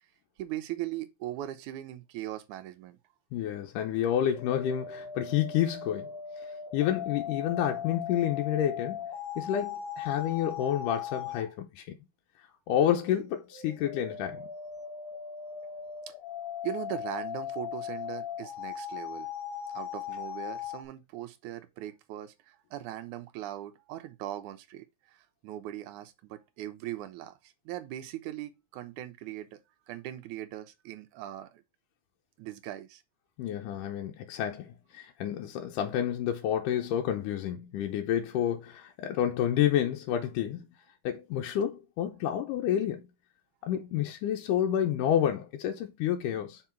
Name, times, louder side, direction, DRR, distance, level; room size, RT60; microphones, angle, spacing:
voice 1, 0.4-3.0 16.6-19.3 19.7-29.6 29.9-31.6 32.4-33.0, right 13 dB, 75° right, 2.2 m, -40 dB
voice 2, 3.3-6.1 6.7-9.0 9.4-12.0 12.7-14.5 33.4-40.7 41.0-43.0 43.6-46.6, left 10 dB, 85° left, 2.4 m, -29 dB
sound 1, 4.1-11.5 13.5-20.8, left 8 dB, 25° left, 3.4 m, -38 dB
6.0 x 4.7 x 4.4 m
omnidirectional pair, 3.7 m